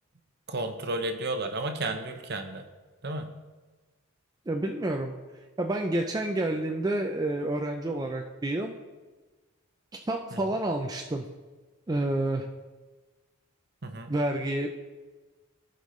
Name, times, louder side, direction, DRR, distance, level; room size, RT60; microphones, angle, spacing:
voice 1, 0.5-2.7 3.0-3.3 10.3-10.4 13.8-14.2, right 2 dB, 50° right, 6 dB, 0.8 m, -32 dB
voice 2, 4.5-5.1 5.6-8.7 10.1-11.2 11.9-12.5 14.1-14.7, right 1 dB, 20° right, 2 dB, 0.4 m, -29 dB
15.5 x 5.3 x 3.2 m, 1.3 s
head